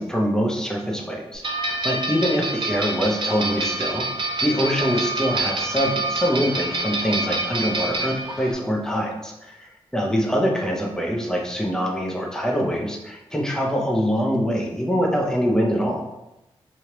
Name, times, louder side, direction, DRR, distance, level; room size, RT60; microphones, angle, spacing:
voice 1, 0.0-4.1 4.4-16.0, equal, 5° left, -1 dB, 0.7 m, -24 dB
sound 1, 1.4-8.5, right 2 dB, 50° right, 0.6 m, -27 dB
3.2 x 2.3 x 2.9 m, 0.92 s
cardioid pair, 70°, 11 cm